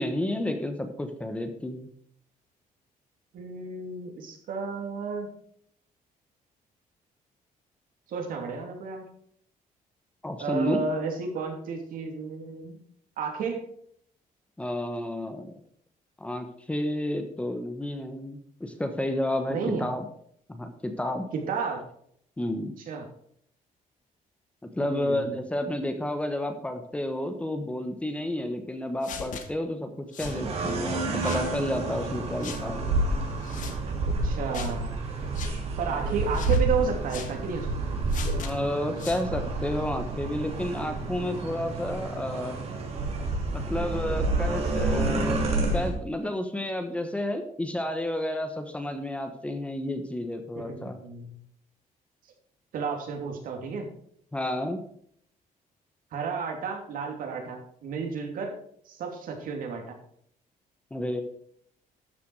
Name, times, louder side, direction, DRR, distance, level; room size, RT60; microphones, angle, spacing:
voice 1, 0.0-1.9 10.2-10.9 14.6-15.5 16.2-20.0 20.5-21.3 22.4-22.8 24.6-33.0 38.4-42.6 43.5-45.4 45.7-50.9 54.3-54.8 60.9-61.2, left 1 dB, 10° left, 7 dB, 1.1 m, -31 dB
voice 2, 3.3-5.3 8.1-9.1 10.4-12.8 13.2-13.6 19.5-19.9 21.3-21.8 22.9-23.1 24.8-25.4 34.2-34.9 35.8-37.9 50.7-51.4 52.7-53.9 56.1-58.6 58.9-60.0, right 5 dB, 70° right, 3 dB, 2.8 m, -32 dB
sound 1, 29.0-29.4 30.1-30.4 31.1-31.5 32.4-32.6 33.4-33.8 34.5-34.8 35.3-35.5 36.3-36.6 37.1-37.3 38.1-38.5 39.0-39.3, left 7 dB, 60° left, 1.6 m, -39 dB
sound 2, 30.2-45.9, right 2 dB, 45° right, 2.8 m, -29 dB
13.0 x 6.9 x 4.7 m, 0.66 s
cardioid pair, 165°, 15 cm